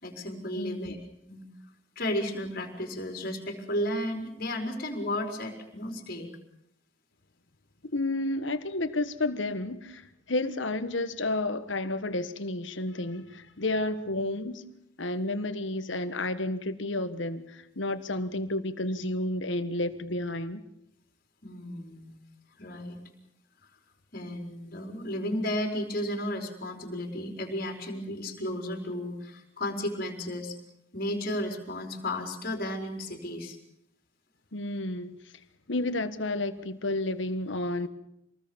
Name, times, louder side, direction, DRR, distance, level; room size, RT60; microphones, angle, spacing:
voice 1, 0.0-1.0 1.3-1.4 2.0-6.3 21.4-22.1 22.6-23.0 23.6-23.7 24.1-30.6 30.9-33.6, left 1 dB, 50° left, 4.7 m, -33 dB
voice 2, 0.5-0.9 7.9-10.0 10.3-14.6 15.0-20.6 34.5-35.2 35.7-37.9, left 2 dB, 65° left, 1.5 m, -31 dB
26.5 x 20.0 x 7.1 m
head